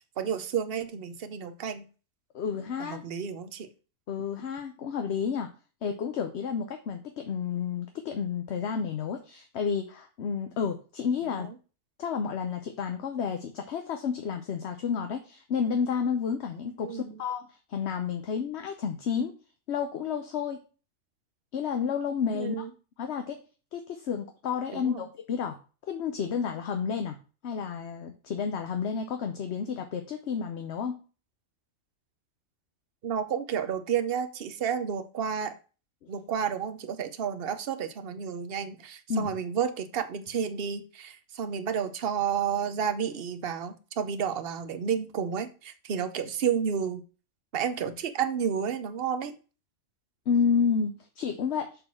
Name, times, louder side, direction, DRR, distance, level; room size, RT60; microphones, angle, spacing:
voice 1, 0.2-1.8 2.8-3.7 11.4-11.5 16.8-17.2 22.3-22.7 24.7-25.0 33.0-35.5 36.1-47.0 47.5-49.3, right 7 dB, 50° right, 10 dB, 0.9 m, -31 dB
voice 2, 2.3-3.0 4.1-5.5 5.8-11.5 12.0-19.3 19.7-20.6 21.5-22.6 23.0-23.4 23.7-25.6 25.9-27.2 27.4-31.0 39.1-39.3 50.3-51.7, left 6 dB, 55° left, 6 dB, 1.0 m, -31 dB
6.6 x 4.3 x 5.9 m, 0.35 s
omnidirectional pair, 1.4 m